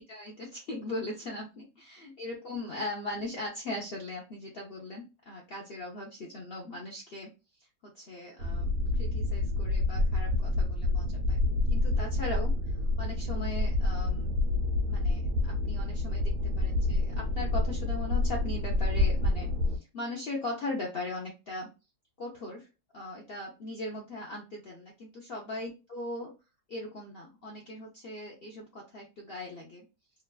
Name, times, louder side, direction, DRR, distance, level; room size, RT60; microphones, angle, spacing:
voice 1, 0.0-7.3 7.9-12.5 13.0-14.3 14.9-21.7 22.2-22.7 22.9-26.3 26.7-29.8, left 2 dB, 60° left, -1 dB, 0.6 m, -39 dB
sound 1, 8.4-19.8, left 2 dB, 75° right, 1.3 m, -28 dB
3.0 x 2.3 x 2.2 m, 0.29 s
omnidirectional pair, 1.7 m